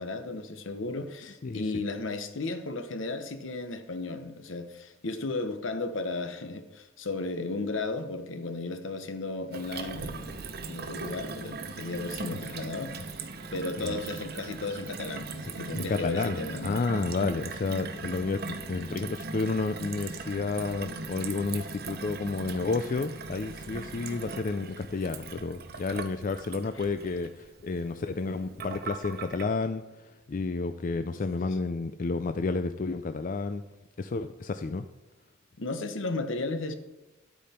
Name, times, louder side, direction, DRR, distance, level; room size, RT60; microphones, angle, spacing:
voice 1, 0.0-10.4 10.7-13.2 13.5-16.8 35.6-36.7, left 3 dB, 75° left, 1.0 m, -34 dB
Gurgling / Water tap faucet / Sink (filling or washing), 9.5-29.4, right 4 dB, 50° right, 0.8 m, -39 dB
voice 2, 15.8-16.4 16.6-18.4 18.7-33.6 34.0-34.9, left 3 dB, 40° left, 0.4 m, -31 dB
10.5 x 8.5 x 4.3 m
head